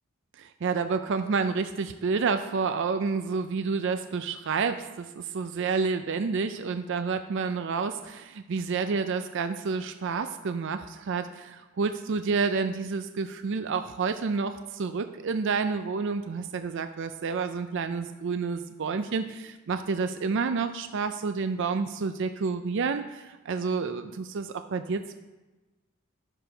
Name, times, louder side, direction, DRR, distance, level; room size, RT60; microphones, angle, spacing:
voice 1, 0.4-25.1, right 5 dB, 60° right, 9 dB, 0.4 m, -29 dB
12.0 x 6.9 x 4.5 m, 1.2 s
head